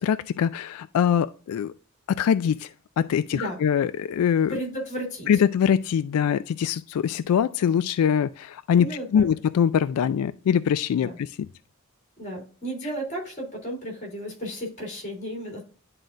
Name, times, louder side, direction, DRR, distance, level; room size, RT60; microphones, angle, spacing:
voice 1, 0.0-1.7 2.1-4.6 5.3-11.3, left 8 dB, 85° left, 0.3 m, -23 dB
voice 2, 4.5-5.3 8.8-9.2 11.0-11.2 12.2-15.6, right 1 dB, 35° left, 2.5 m, -33 dB
10.5 x 3.9 x 2.4 m
head